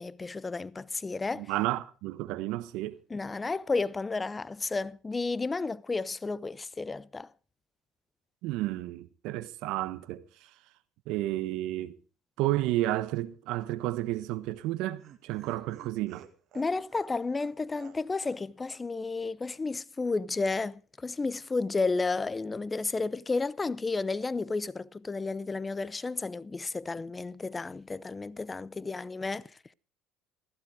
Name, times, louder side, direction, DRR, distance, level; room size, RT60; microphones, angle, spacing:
voice 1, 0.0-1.5 3.1-7.3 16.5-29.5, left 3 dB, 20° left, 0.6 m, -32 dB
voice 2, 1.4-3.0 8.4-10.2 11.1-12.0 12.4-16.2, right 16 dB, 75° right, 1.2 m, -31 dB
Laughter, 14.4-18.4 18.7-18.8 19.1-19.2, right 10 dB, 55° right, 2.0 m, -53 dB
15.5 x 14.5 x 4.9 m
supercardioid pair, 95°, 0 cm